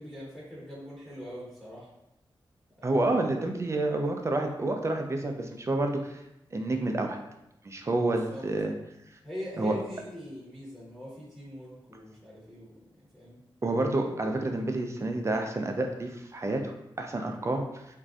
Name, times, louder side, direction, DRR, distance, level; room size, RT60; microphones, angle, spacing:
voice 1, 0.0-1.9 2.8-3.2 8.3-8.5 9.2-13.4, equal, 10° left, -7 dB, 1.0 m, -42 dB
voice 2, 2.8-6.2 6.5-7.2 7.6-8.7 9.6-9.8 13.6-17.9, right 2 dB, 35° right, 3 dB, 0.4 m, -29 dB
3.0 x 2.5 x 2.4 m, 0.87 s
cardioid pair, 70°, 9 cm